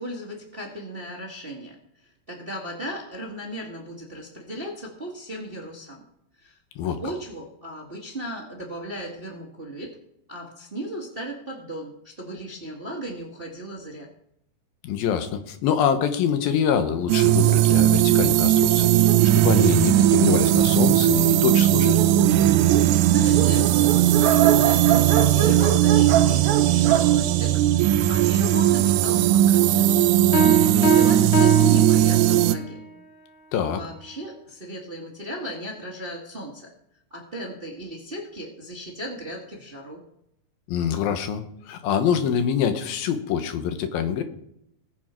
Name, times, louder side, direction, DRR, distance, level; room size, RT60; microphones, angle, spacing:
voice 1, 0.0-1.8 2.0-6.0 6.4-6.5 7.0-10.0 10.3-14.1 23.0-29.9 30.3-32.8 33.7-36.7 37.1-40.0, right 1 dB, 30° right, -1 dB, 1.1 m, -36 dB
voice 2, 14.8-22.0 33.5-33.8 40.7-44.2, left 8 dB, 80° left, 8 dB, 2.9 m, -25 dB
sound 1, 17.1-32.6, right 12 dB, 90° right, 1.8 m, -18 dB
Dog, 17.4-20.4 21.1-21.2 21.5-21.6 21.8-28.2, right 9 dB, 70° right, 1.8 m, -27 dB
Piano, 30.3-32.7, right 3 dB, 60° left, 1.3 m, -22 dB
20.0 x 7.1 x 4.5 m, 0.76 s
omnidirectional pair, 4.2 m